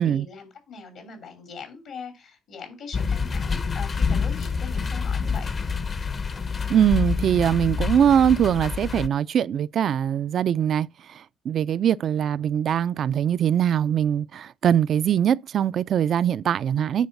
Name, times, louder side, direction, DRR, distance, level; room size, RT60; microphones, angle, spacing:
voice 1, 0.0-5.5, left 5 dB, 75° left, 2.9 m, -41 dB
sound 1, 2.9-9.1, left 5 dB, 40° left, 0.8 m, -27 dB
voice 2, 6.7-17.1, right 9 dB, 65° right, 0.4 m, -22 dB
9.4 x 4.0 x 6.5 m
cardioid pair, 90°, 0 cm